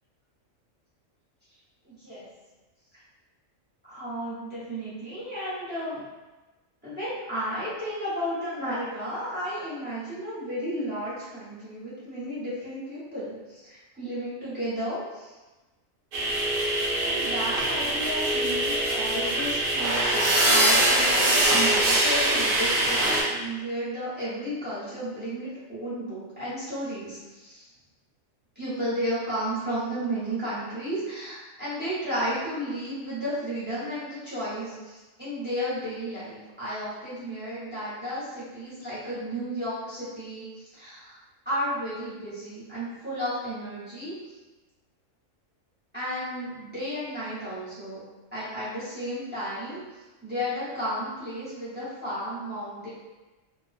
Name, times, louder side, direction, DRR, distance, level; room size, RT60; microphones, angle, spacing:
voice 1, 1.8-2.3 3.9-6.0 6.8-15.3 17.0-27.7 28.5-41.2 41.4-44.3 45.9-48.0 48.3-49.8 50.2-52.9, equal, 10° right, -12 dB, 0.9 m, -33 dB
sound 1, 16.1-23.2, right 1 dB, 60° right, 0.6 m, -23 dB
2.5 x 2.2 x 2.5 m, 1.2 s
omnidirectional pair, 1.4 m